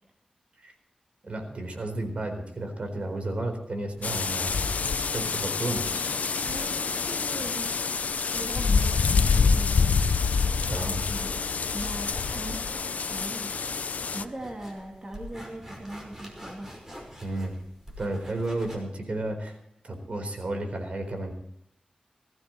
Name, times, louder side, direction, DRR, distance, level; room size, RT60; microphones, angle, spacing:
voice 1, 1.2-4.5 5.1-6.1 10.7-11.0 17.2-17.6 18.0-19.6 19.8-21.3, right 2 dB, 55° right, 5 dB, 4.1 m, -32 dB
sound 1, 3.9-18.8, equal, 15° right, 5.3 m, -48 dB
sound 2, 4.0-14.2, left 5 dB, 75° left, 0.6 m, -26 dB
voice 2, 6.0-10.4 10.7-11.3 11.7-16.7, right 1 dB, 40° right, -2 dB, 3.1 m, -40 dB
20.5 x 15.5 x 3.2 m, 0.73 s
wide cardioid pair, 85°, 3 cm